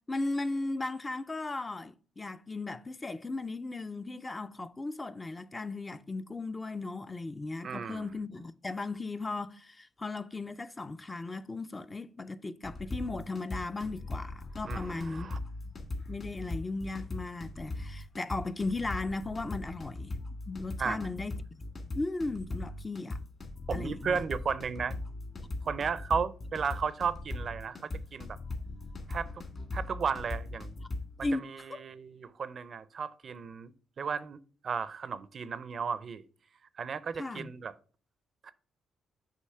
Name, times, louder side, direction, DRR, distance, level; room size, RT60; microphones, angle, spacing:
voice 1, 0.1-15.3 16.1-20.2 20.5-21.7 21.9-23.2 23.7-24.2 31.2-31.8 37.1-37.5, left 3 dB, 20° left, 0.4 m, -36 dB
voice 2, 7.6-8.1 14.7-15.4 20.8-21.1 23.7-24.9 25.6-28.4 29.1-29.4 29.7-30.7 31.3-33.7 34.0-34.4 34.6-36.2 36.8-37.7 38.4-38.5, right 6 dB, 50° right, 0.4 m, -34 dB
sound 1, 12.6-31.3, left 2 dB, 40° left, 1.6 m, -39 dB
6.4 x 2.9 x 5.5 m
cardioid pair, 90°, 0 cm